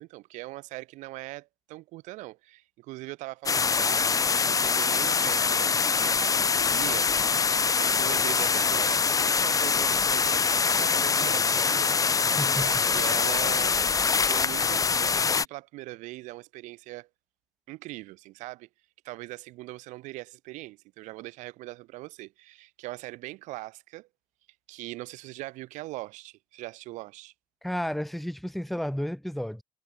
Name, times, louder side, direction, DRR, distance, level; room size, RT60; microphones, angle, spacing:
voice 1, 0.0-12.0 12.6-13.8 14.3-17.1 17.7-18.7 19.0-24.1 24.7-27.3, right 19 dB, 75° right, 1.2 m, -41 dB
sound 1, 3.5-15.5, left 5 dB, 25° left, 0.6 m, -24 dB
voice 2, 12.4-12.8 27.6-29.6, equal, ahead, 1.0 m, -32 dB
hypercardioid pair, 65°, 13 cm